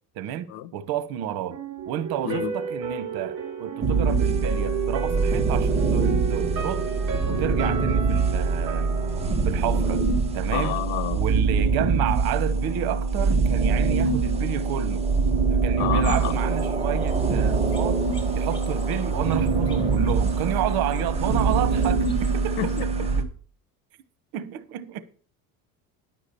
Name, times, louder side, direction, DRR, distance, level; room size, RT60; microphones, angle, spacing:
voice 1, 0.1-1.6 1.9-6.9 7.3-8.9 9.4-10.0 10.3-10.8 11.1-15.1 15.5-18.1 18.3-22.6 24.3-25.0, right 11 dB, 70° right, 1.2 m, -30 dB
sound 1, 1.5-10.5 10.8-10.9, right 6 dB, 55° right, 3.1 m, -32 dB
sound 2, 3.8-23.2, right 4 dB, 15° right, 1.4 m, -24 dB
voice 2, 10.5-11.2 15.8-16.4 22.6-22.9, left 13 dB, 90° left, 1.1 m, -29 dB
sound 3, 15.9-22.8, equal, 15° left, 1.6 m, -43 dB
10.5 x 6.0 x 6.9 m
cardioid pair, 130°, 37 cm